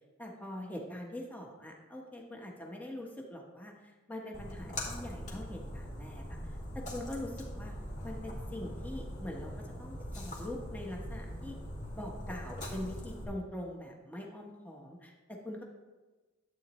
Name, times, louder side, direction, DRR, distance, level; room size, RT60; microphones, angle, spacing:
voice 1, 0.2-7.7 8.0-9.5 9.8-11.6 11.9-15.6, left 1 dB, 10° left, 0 dB, 1.1 m, -43 dB
Splash splatter, 4.3-13.2, equal, 40° left, 2.1 m, -42 dB
11.5 x 8.5 x 3.1 m, 1.2 s
head